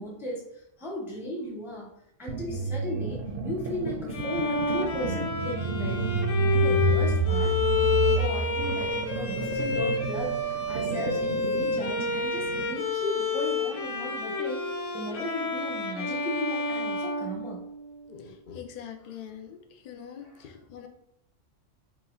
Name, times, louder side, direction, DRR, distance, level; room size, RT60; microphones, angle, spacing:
voice 1, 0.0-1.9 2.2-6.0 6.5-7.6 8.1-14.6 14.9-17.7 20.2-20.6, equal, ahead, -2 dB, 0.6 m, -36 dB
sound 1, 2.3-12.8, right 3 dB, 55° right, 0.7 m, -30 dB
Bowed string instrument, 4.1-18.0, left 4 dB, 85° left, 1.1 m, -29 dB
voice 2, 18.1-19.6 19.8-20.9, left 8 dB, 55° left, 3 dB, 0.6 m, -43 dB
4.9 x 2.4 x 3.7 m, 0.75 s
omnidirectional pair, 1.3 m